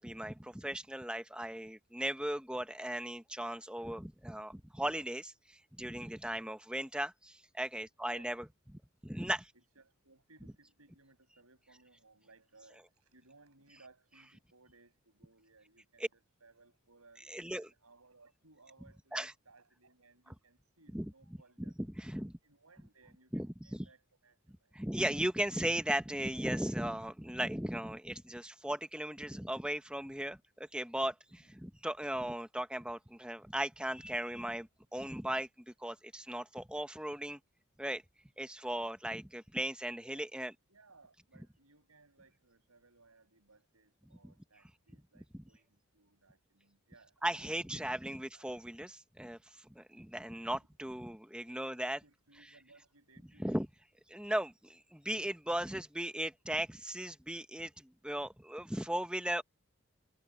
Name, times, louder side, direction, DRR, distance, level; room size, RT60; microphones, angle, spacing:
voice 1, 0.0-8.4 9.0-9.5 17.3-17.7 19.1-19.3 20.9-21.1 21.8-22.4 23.3-23.9 24.7-37.4 37.8-38.0 38.4-40.5 44.2-44.3 45.3-45.4 47.2-52.0 53.4-53.7 54.1-59.4, right 1 dB, 5° right, 1.0 m, -37 dB
voice 2, 9.5-21.7 22.4-24.8 31.4-31.5 40.1-40.3 40.7-48.0 48.3-48.5 51.7-53.6, right 3 dB, 90° right, 7.4 m, -64 dB
head